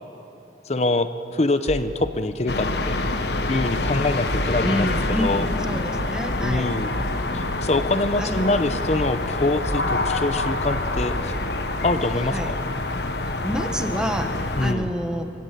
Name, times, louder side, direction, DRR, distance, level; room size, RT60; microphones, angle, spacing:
voice 1, 0.7-3.0 3.5-5.5 6.4-6.9 7.3-11.3 11.8-12.5 14.6-14.9, left 2 dB, 35° left, 11 dB, 0.8 m, -24 dB
sound 1, 1.7-2.1 3.3-3.5 3.8-3.9 4.3-4.8 6.0-6.2 6.5-6.6 7.0-7.4 8.7-8.9 9.2-9.3 9.7-10.1 11.3-11.5 11.8-11.9, right 1 dB, 40° right, 0.8 m, -33 dB
sound 2, 2.5-14.7, left 2 dB, 70° left, 1.2 m, -26 dB
voice 2, 4.6-6.7 8.2-8.6 12.3-12.5 13.2-15.3, equal, 5° right, 5 dB, 1.3 m, -28 dB
25.5 x 16.0 x 8.4 m, 2.8 s
head